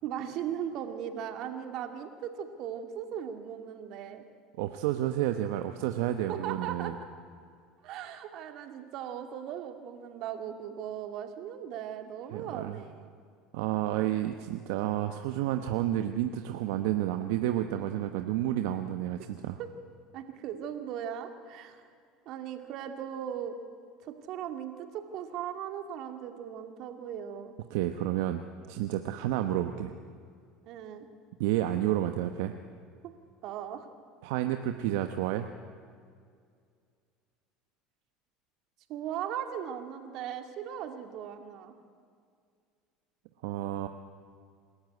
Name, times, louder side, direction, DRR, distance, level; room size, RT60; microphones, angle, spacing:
voice 1, 0.0-4.2 6.3-7.0 7.8-13.1 19.2-19.3 19.6-19.7 20.1-21.9 22.3-23.6 24.0-27.5 30.6-31.1 33.0-33.1 33.4-33.9 38.9-41.7, right 9 dB, 60° right, 6 dB, 2.4 m, -38 dB
voice 2, 4.6-6.9 12.3-12.8 13.5-19.6 27.7-29.9 31.4-32.5 34.2-35.5 43.4-43.9, right 13 dB, 80° right, 7 dB, 1.0 m, -30 dB
27.5 x 13.5 x 9.5 m, 2.2 s
supercardioid pair, 110°, 0 cm